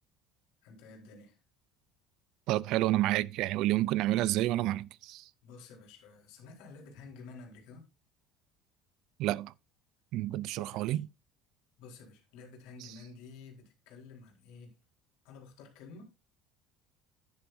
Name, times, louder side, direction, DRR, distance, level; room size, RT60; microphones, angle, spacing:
voice 1, 0.6-1.4 5.4-7.9 10.5-11.0 11.8-14.7 15.2-16.0, left 4 dB, 65° left, 4.2 m, -51 dB
voice 2, 2.5-5.2 9.2-9.5 10.1-11.1, right 15 dB, 50° right, 0.4 m, -29 dB
11.0 x 10.5 x 2.6 m
cardioid pair, 175°, 0 cm